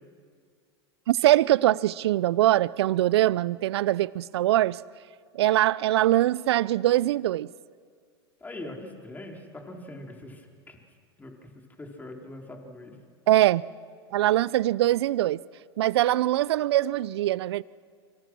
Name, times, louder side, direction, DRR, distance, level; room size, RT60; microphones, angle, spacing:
voice 1, 1.1-4.8 5.3-7.5 13.3-13.6 14.1-15.4 15.8-17.6, right 14 dB, 70° right, 0.6 m, -22 dB
voice 2, 8.4-10.8 11.2-13.0, left 1 dB, 10° left, 3.9 m, -42 dB
28.0 x 25.5 x 6.2 m
hypercardioid pair, 105°, 14 cm